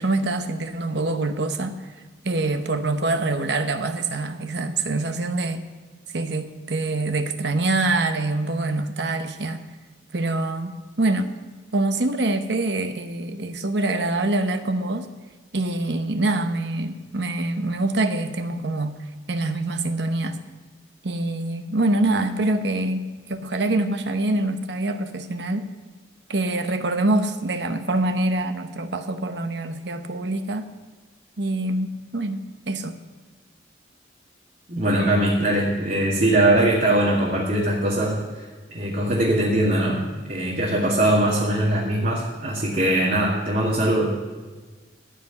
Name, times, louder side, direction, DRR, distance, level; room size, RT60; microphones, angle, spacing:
voice 1, 0.0-1.8 2.2-5.6 6.1-9.6 10.1-11.3 11.7-15.1 15.5-18.9 19.3-20.4 21.0-25.7 26.3-30.7 31.4-33.0, right 2 dB, 60° right, 8 dB, 0.9 m, -25 dB
voice 2, 34.7-38.1 38.7-40.0 40.3-44.1, right 1 dB, 45° right, -6 dB, 2.2 m, -21 dB
15.0 x 5.1 x 9.2 m, 1.3 s
head